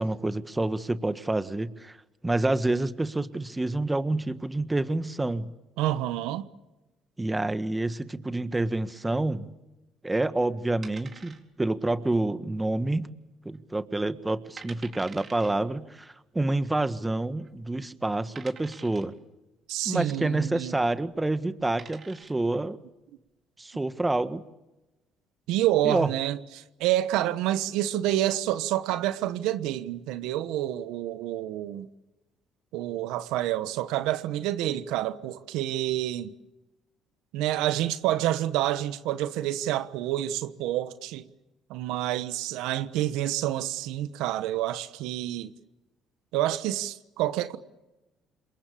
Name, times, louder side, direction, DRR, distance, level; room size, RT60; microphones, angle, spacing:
voice 1, 0.0-2.0 2.2-5.5 7.2-9.5 10.0-13.1 13.5-19.1 19.9-22.8 23.6-24.4 25.8-26.1, right 2 dB, 15° right, 1.7 m, -28 dB
voice 2, 5.8-6.5 19.7-20.8 25.5-31.9 32.7-36.3 37.3-41.3 41.7-45.5 46.3-47.6, right 13 dB, 80° right, 1.2 m, -28 dB
sound 1, 10.8-11.8 12.0-12.1 12.8-13.2 13.5-13.6 14.2-14.3 14.6-15.5 16.6-16.7 17.4-17.5 18.4-19.2 21.0-21.2 21.6-22.5, right 5 dB, 45° right, 4.1 m, -47 dB
27.5 x 22.5 x 8.7 m
supercardioid pair, 70°, 0 cm